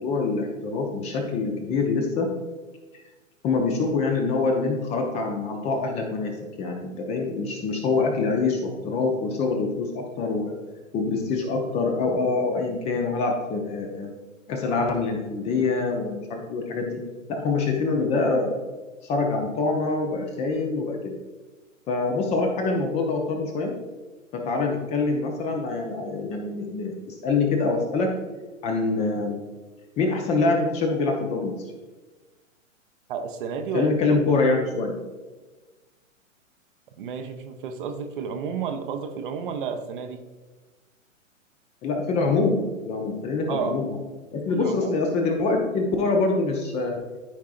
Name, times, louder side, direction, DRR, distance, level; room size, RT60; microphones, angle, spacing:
voice 1, 0.0-2.3 2.9-3.0 3.4-6.3 6.6-10.5 10.9-14.1 14.5-17.0 17.3-18.6 19.0-21.1 21.9-23.7 24.3-28.1 28.6-29.4 30.0-31.5 33.7-35.0 41.8-43.9 44.3-47.0, left 3 dB, 15° left, 3 dB, 0.7 m, -25 dB
voice 2, 33.1-34.4 37.0-40.2 43.5-43.8 44.5-45.0, right 6 dB, 40° right, 6 dB, 0.8 m, -31 dB
13.0 x 4.6 x 2.5 m, 1.2 s
figure-of-eight pair, 115°, 40 cm